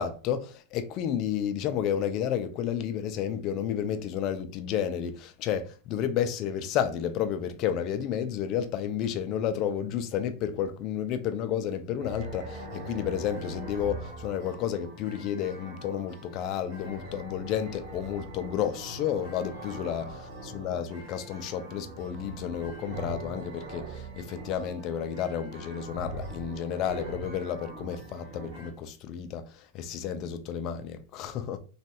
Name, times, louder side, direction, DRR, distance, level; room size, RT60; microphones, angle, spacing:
voice 1, 0.0-20.1 20.5-31.6, left 9 dB, 40° left, 0.4 m, -31 dB
sound 1, 12.0-28.7, right 1 dB, 65° right, 1.4 m, -42 dB
3.1 x 2.2 x 2.7 m
supercardioid pair, 140°, 0 cm